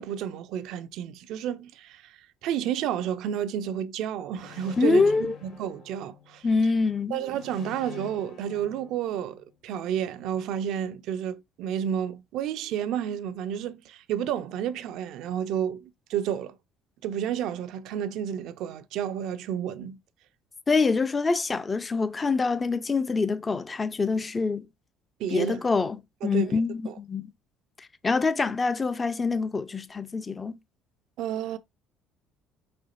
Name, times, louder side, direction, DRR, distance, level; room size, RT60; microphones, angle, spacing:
voice 1, 0.0-6.5 7.1-16.6 17.0-20.0 25.2-25.6 26.2-26.6 31.2-31.6, right 9 dB, 65° right, 0.5 m, -31 dB
sound 1, 4.3-6.5 7.3-9.5, left 8 dB, 60° left, 1.9 m, -46 dB
voice 2, 4.8-5.4 6.4-7.2 20.7-24.7 25.3-27.3 27.8-30.6, left 4 dB, 25° left, 0.6 m, -25 dB
4.8 x 4.3 x 2.5 m
hypercardioid pair, 55°, 0 cm